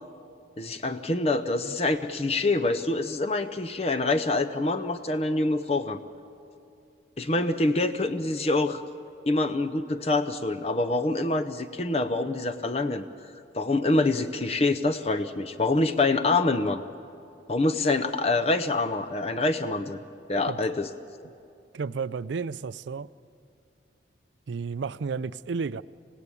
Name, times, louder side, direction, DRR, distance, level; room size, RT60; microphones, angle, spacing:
voice 1, 0.6-6.0 7.2-8.8 9.3-13.1 13.5-16.8 17.5-20.0 20.3-20.9 21.2-21.3, left 2 dB, 35° left, 0.6 m, -26 dB
voice 2, 21.7-23.1 24.5-25.8, right 5 dB, 80° right, 0.4 m, -32 dB
27.0 x 16.5 x 8.4 m
head